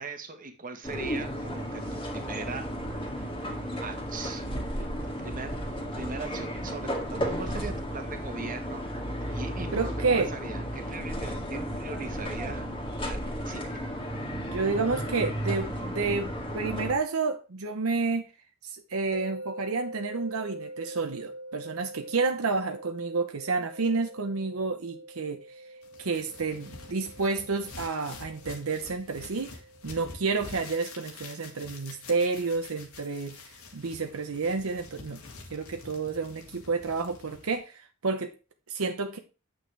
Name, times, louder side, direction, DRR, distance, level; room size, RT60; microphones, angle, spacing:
voice 1, 0.0-2.7 3.2-3.3 3.8-4.9 5.2-8.8 9.3-12.7 13.0-13.2 13.4-13.8, right 3 dB, 40° right, 1.3 m, -40 dB
sound 1, 0.8-16.9, equal, 25° left, 1.8 m, -33 dB
voice 2, 9.7-10.3 14.3-18.3 18.6-25.4 26.0-29.5 29.8-33.4 33.7-35.2 35.5-38.3 38.7-39.2, right 4 dB, 75° right, 0.8 m, -30 dB
sound 2, 19.1-32.2, right 1 dB, 65° left, 1.7 m, -45 dB
sound 3, 25.8-37.6, left 3 dB, 90° left, 2.2 m, -47 dB
8.8 x 6.5 x 3.4 m
head